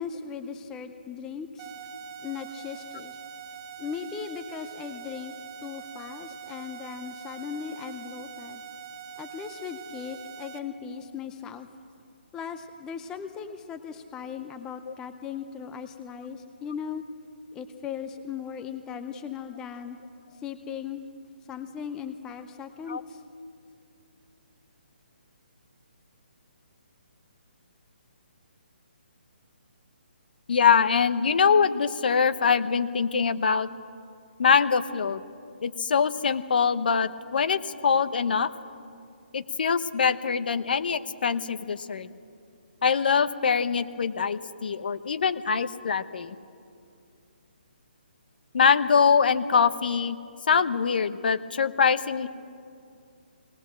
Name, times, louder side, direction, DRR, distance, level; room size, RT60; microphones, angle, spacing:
voice 1, 0.0-1.7 2.2-3.1 3.8-5.3 5.6-8.6 9.2-11.7 12.3-17.0 17.5-20.0 20.4-21.0 21.5-23.2, left 7 dB, 10° left, 8 dB, 0.6 m, -38 dB
sound 1, 1.6-10.6, right 7 dB, 20° right, 1.0 m, -43 dB
voice 2, 30.5-33.7 34.4-35.2 35.6-38.5 39.3-42.1 42.8-46.3 48.5-50.2 50.5-52.3, left 6 dB, 60° left, 12 dB, 1.0 m, -23 dB
19.5 x 19.5 x 7.6 m, 2.4 s
hypercardioid pair, 165°, 6 cm